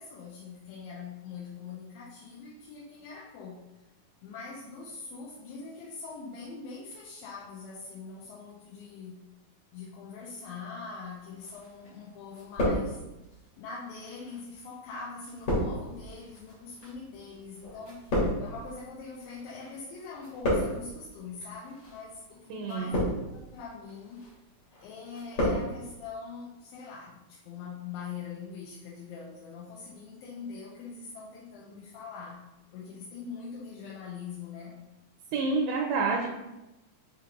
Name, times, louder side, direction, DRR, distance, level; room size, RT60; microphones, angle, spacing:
voice 1, 0.0-3.6 4.2-9.2 9.7-13.0 13.6-24.3 24.8-32.5 32.7-34.8, left 5 dB, 90° left, -4 dB, 2.3 m, -43 dB
sound 1, 11.4-12.0 12.3-13.3 14.1-19.7 20.0-21.0 21.7-22.0 22.6-23.4 23.9-24.3 24.7-25.7 25.9-26.0, equal, 65° left, 1.0 m, -31 dB
voice 2, 22.5-23.0 35.3-36.3, right 4 dB, 85° right, 0 dB, 1.7 m, -28 dB
5.9 x 2.4 x 2.9 m, 0.97 s
omnidirectional pair, 4.0 m